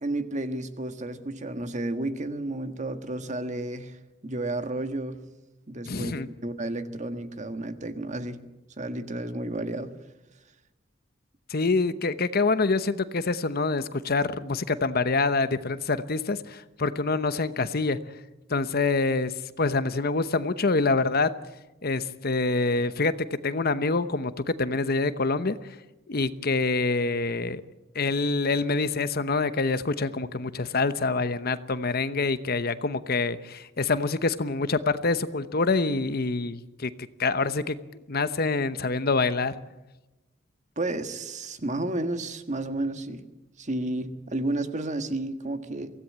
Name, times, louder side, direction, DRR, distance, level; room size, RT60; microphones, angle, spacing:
voice 1, 0.0-5.2 5.7-6.1 6.4-8.4 8.8-9.9 40.8-43.2 43.6-45.9, right 2 dB, 35° right, 9 dB, 1.6 m, -32 dB
voice 2, 5.9-6.3 11.5-18.0 18.5-21.3 21.8-23.1 23.4-25.8 26.1-27.6 27.9-36.9 37.2-37.7 38.1-39.5, left 3 dB, 50° left, 13 dB, 0.9 m, -26 dB
24.0 x 16.5 x 8.8 m, 1.0 s
head